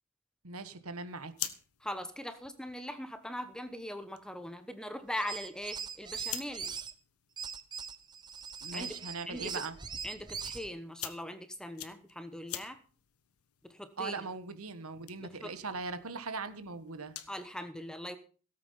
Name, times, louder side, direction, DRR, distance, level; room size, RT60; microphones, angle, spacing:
voice 1, 0.4-1.5 8.6-9.8 14.0-17.2, right 4 dB, 85° right, 11 dB, 1.5 m, -40 dB
sound 1, 1.0-17.5, left 12 dB, 85° left, 1.4 m, -49 dB
voice 2, 1.8-6.7 8.7-8.9 9.3-9.6 10.0-12.8 13.6-14.2 15.2-15.5 17.3-18.2, equal, 5° left, 10 dB, 1.0 m, -41 dB
sound 2, 5.1-6.9 7.4-10.7, right 6 dB, 20° right, 0.8 m, -41 dB
17.0 x 8.4 x 5.6 m, 0.40 s
head